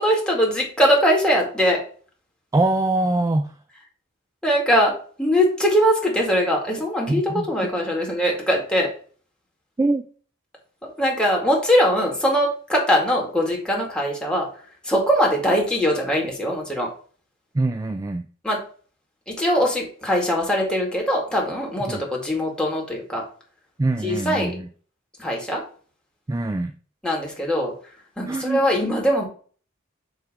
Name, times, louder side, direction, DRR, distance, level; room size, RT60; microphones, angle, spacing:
voice 1, 0.0-1.8 4.4-4.9 5.2-7.2 7.5-8.9 10.8-14.5 14.8-16.9 18.4-18.6 19.3-23.2 24.0-24.5 25.2-25.6 27.0-27.7 28.2-29.2, equal, 5° left, -2 dB, 2.1 m, -21 dB
voice 2, 2.5-3.5 7.1-7.5 9.8-10.0 17.5-18.3 21.9-22.0 23.8-24.7 26.3-26.7 28.3-28.6, right 2 dB, 15° right, 8 dB, 0.3 m, -23 dB
8.2 x 3.3 x 4.9 m, 0.43 s
head